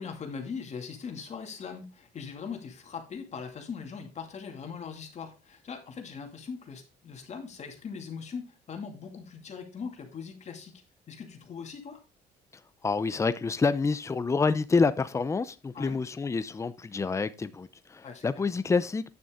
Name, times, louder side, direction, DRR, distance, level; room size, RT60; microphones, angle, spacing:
voice 1, 0.0-10.8 11.1-12.0 15.7-16.0 18.0-18.3, left 6 dB, 40° left, 2.4 m, -40 dB
voice 2, 12.8-19.0, left 4 dB, 15° left, 0.6 m, -27 dB
9.4 x 6.9 x 3.7 m
cardioid pair, 110°, 17 cm